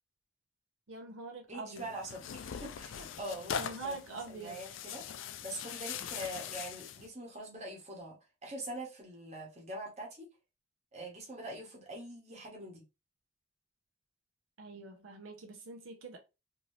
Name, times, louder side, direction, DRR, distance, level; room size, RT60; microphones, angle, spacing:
voice 1, 0.9-1.9 3.6-4.6 14.6-16.2, right 3 dB, 85° right, 0.7 m, -44 dB
voice 2, 1.5-5.0 5.4-10.3 10.9-12.8, right 1 dB, 35° right, 1.0 m, -44 dB
Tearing, 1.7-7.1, left 8 dB, 75° left, 0.3 m, -41 dB
2.7 x 2.6 x 3.1 m
head